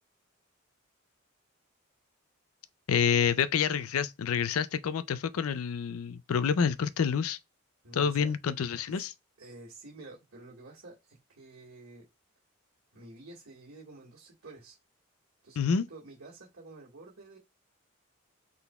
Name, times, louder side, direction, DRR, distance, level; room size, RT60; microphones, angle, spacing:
voice 1, 2.9-7.4 8.0-9.1 15.6-15.9, left 7 dB, 90° left, 0.4 m, -28 dB
voice 2, 7.8-8.3 8.9-9.1 9.4-12.0 12.9-14.7 15.4-17.4, right 2 dB, 80° right, 1.7 m, -50 dB
5.8 x 3.8 x 2.3 m
head